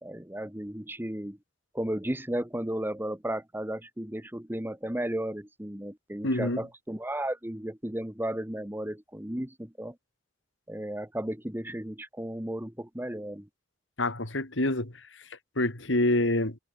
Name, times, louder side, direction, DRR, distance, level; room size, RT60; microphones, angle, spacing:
voice 1, 0.0-1.4 1.7-10.0 10.7-13.5, right 1 dB, 10° right, 1.4 m, -34 dB
voice 2, 6.2-6.6 14.0-14.9 15.6-16.6, left 1 dB, 80° left, 3.5 m, -26 dB
head